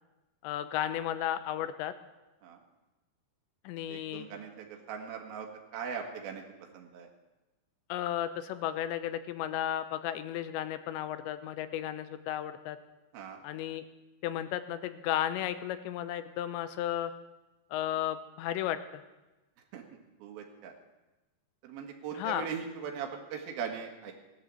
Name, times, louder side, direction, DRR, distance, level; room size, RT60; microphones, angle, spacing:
voice 1, 0.4-1.9 3.7-4.3 7.9-12.8 13.4-13.8 14.2-17.1 17.7-19.0 22.2-22.5, left 11 dB, 85° left, 11 dB, 3.0 m, -34 dB
voice 2, 3.9-6.4 6.7-7.1 13.1-13.4 19.7-19.8 20.2-20.7 21.6-24.1, right 7 dB, 60° right, 1 dB, 3.4 m, -40 dB
17.0 x 11.0 x 7.7 m, 1.1 s
omnidirectional pair, 5.2 m